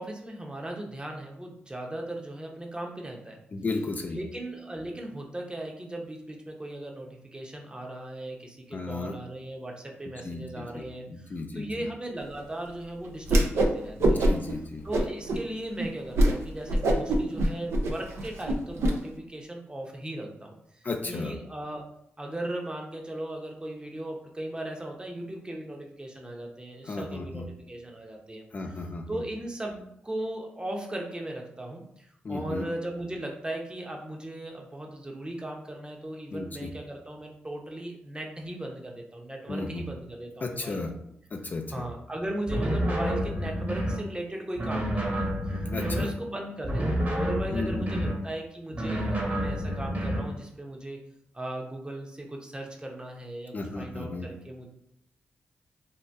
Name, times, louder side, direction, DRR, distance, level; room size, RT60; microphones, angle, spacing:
voice 1, 0.0-3.4 4.1-14.2 14.8-21.8 22.2-28.8 29.1-40.8 41.7-51.0 51.3-54.7, right 1 dB, 20° right, 1 dB, 0.7 m, -37 dB
voice 2, 3.5-4.2 8.7-9.2 10.1-11.9 14.0-14.9 20.8-21.4 26.8-27.5 28.5-29.2 32.2-32.7 36.3-36.7 39.5-39.9 40.4-40.9 41.3-41.9 45.7-46.1 47.5-48.1 53.5-54.3, left 3 dB, 40° left, 4 dB, 0.3 m, -34 dB
Whoosh swoosh swish, 13.2-13.7 14.0-14.5 14.9-15.4 15.8-15.9 16.1-16.3 16.7-18.9, right 1 dB, 85° right, 0.4 m, -23 dB
sound 1, 42.5-44.0 44.6-46.1 46.6-48.2 48.7-50.3, equal, 40° right, 1.0 m, -29 dB
2.7 x 2.1 x 3.3 m, 0.75 s
cardioid pair, 55°, 4 cm